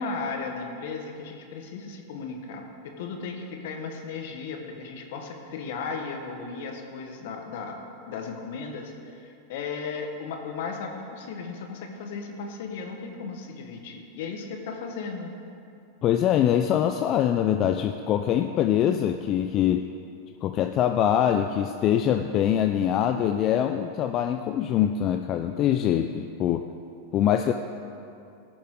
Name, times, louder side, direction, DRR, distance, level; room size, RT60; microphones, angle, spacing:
voice 1, 0.0-7.8 8.1-15.3, left 4 dB, 65° left, 3 dB, 1.5 m, -35 dB
voice 2, 16.0-19.9 20.4-26.7 27.1-27.5, left 10 dB, 40° left, 6 dB, 0.4 m, -23 dB
16.5 x 7.0 x 3.9 m, 2.6 s
hypercardioid pair, 110°, 0 cm